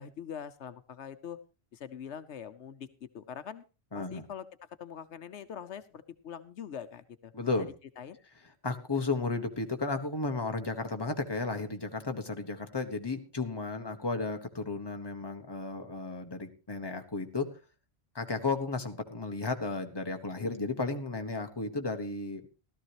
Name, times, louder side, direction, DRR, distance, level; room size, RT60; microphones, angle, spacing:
voice 1, 0.0-1.4 1.7-3.6 3.9-4.5 4.8-7.3 8.0-8.2, left 8 dB, 80° left, 12 dB, 1.1 m, -43 dB
voice 2, 3.9-4.2 7.3-7.7 8.6-17.5 18.1-22.5, left 3 dB, 20° left, 5 dB, 1.4 m, -33 dB
17.0 x 13.0 x 3.0 m, 0.31 s
omnidirectional pair, 1.2 m